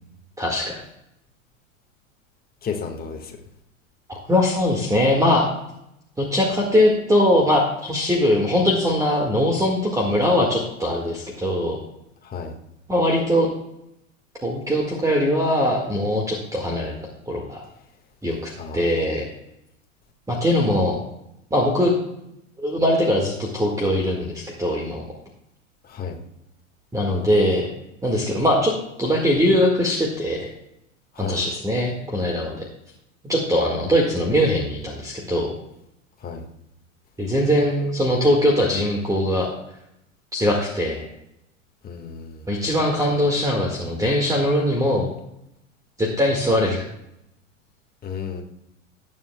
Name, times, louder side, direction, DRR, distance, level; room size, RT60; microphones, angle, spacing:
voice 1, 0.4-0.8 4.1-5.5 6.2-11.8 12.9-13.5 14.4-16.9 17.3-17.6 18.2-19.3 20.3-21.0 21.5-21.9 22.6-25.0 26.9-27.7 28.0-30.5 31.2-32.7 33.2-35.5 37.2-39.5 40.3-41.1 42.5-45.1 46.0-46.8, left 1 dB, 10° right, 0 dB, 1.8 m, -21 dB
voice 2, 2.6-3.4 12.2-12.5 18.6-18.9 25.8-26.2 31.1-31.4 36.2-36.4 41.8-42.5 48.0-48.4, left 6 dB, 20° left, 2 dB, 1.7 m, -32 dB
19.0 x 7.3 x 2.3 m, 0.82 s
hypercardioid pair, 95°, 40 cm